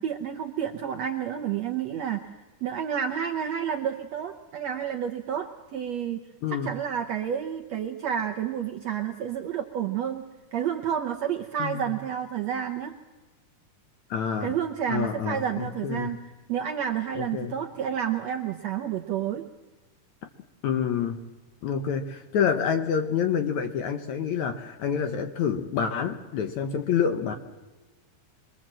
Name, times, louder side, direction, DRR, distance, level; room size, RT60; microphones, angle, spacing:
voice 1, 0.0-2.3 2.6-6.2 6.5-10.2 10.5-12.9 14.4-16.2 16.5-19.4, right 9 dB, 75° right, 4 dB, 1.5 m, -30 dB
voice 2, 11.6-11.9 14.1-14.5 14.9-16.2 17.2-17.6 20.6-21.2 21.6-27.3, left 7 dB, 65° left, 8 dB, 1.9 m, -27 dB
25.5 x 22.5 x 7.6 m, 1.2 s
omnidirectional pair, 4.4 m